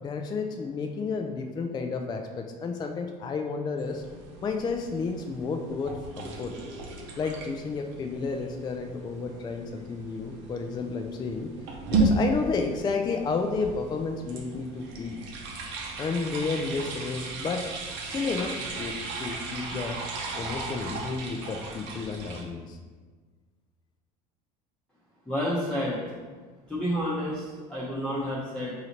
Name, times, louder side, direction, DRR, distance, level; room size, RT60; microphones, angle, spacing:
voice 1, 0.0-4.0 4.4-6.5 7.2-11.5 11.9-15.2 16.0-17.7 18.0-20.0 20.4-22.8, left 4 dB, 20° left, 4 dB, 0.3 m, -31 dB
sound 1, 3.8-22.4, right 3 dB, 60° right, 0.8 m, -35 dB
voice 2, 25.3-26.0 26.7-28.7, equal, 5° left, -7 dB, 0.8 m, -30 dB
4.8 x 2.8 x 2.9 m, 1.4 s
hypercardioid pair, 90°, 21 cm